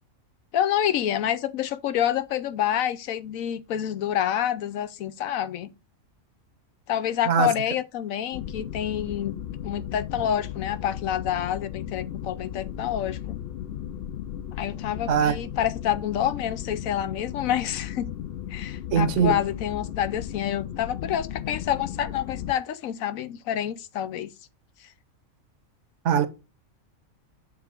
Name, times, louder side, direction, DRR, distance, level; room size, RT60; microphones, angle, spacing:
voice 1, 0.5-5.7 6.9-9.4 9.6-13.2 14.6-18.1 18.5-24.3, left 10 dB, 80° left, 1.1 m, -28 dB
sound 1, 8.3-22.5, left 10 dB, 60° left, 0.6 m, -35 dB
voice 2, 18.9-19.3 26.0-26.3, right 7 dB, 65° right, 1.0 m, -21 dB
7.3 x 3.4 x 5.1 m
omnidirectional pair, 1.4 m